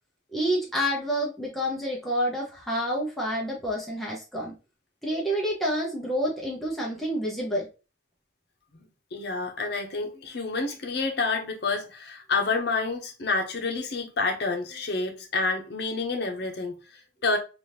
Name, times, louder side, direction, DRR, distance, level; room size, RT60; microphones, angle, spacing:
voice 1, 0.3-4.5 5.0-7.7, equal, ahead, 0.7 m, -28 dB
voice 2, 9.1-17.4, left 3 dB, 60° left, 0.8 m, -29 dB
3.4 x 2.5 x 2.9 m
head